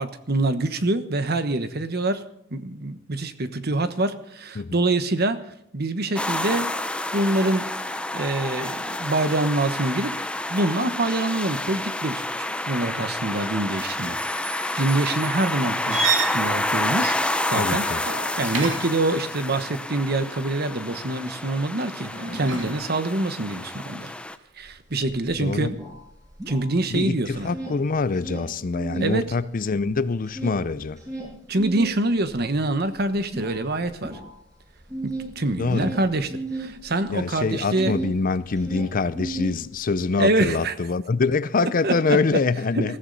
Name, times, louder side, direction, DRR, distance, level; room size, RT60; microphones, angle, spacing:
voice 1, 0.0-2.2 2.5-5.5 5.7-6.8 7.1-7.7 8.1-10.1 10.5-12.2 12.7-14.2 14.8-16.1 16.3-17.2 17.5-17.9 18.4-24.1 24.6-25.8 26.5-27.5 29.0-29.3 31.5-34.2 35.0-38.0 40.2-40.7 41.6-42.4 42.7-43.0, right 2 dB, 55° right, 1.2 m, -25 dB
sound 1, 6.2-24.4, left 1 dB, 5° left, 0.7 m, -29 dB
sound 2, 15.9-19.1 22.1-22.7, right 4 dB, 80° right, 2.8 m, -29 dB
voice 2, 17.5-18.0 25.4-25.7 26.9-31.0 35.6-35.9 37.1-42.9, left 4 dB, 45° left, 0.5 m, -25 dB
sound 3, 24.7-24.8 25.0-27.0 27.3-29.2 29.5-38.2 38.5-40.0, right 2 dB, 20° right, 7.5 m, -35 dB
21.0 x 15.0 x 4.1 m
head